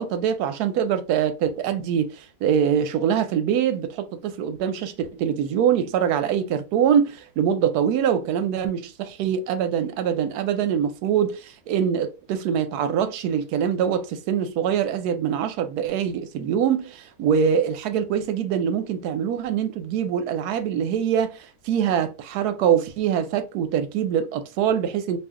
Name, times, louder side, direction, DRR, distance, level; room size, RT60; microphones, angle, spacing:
voice 1, 0.0-25.2, right 8 dB, 85° right, 1.1 m, -24 dB
2.6 x 2.5 x 3.5 m
omnidirectional pair, 1.6 m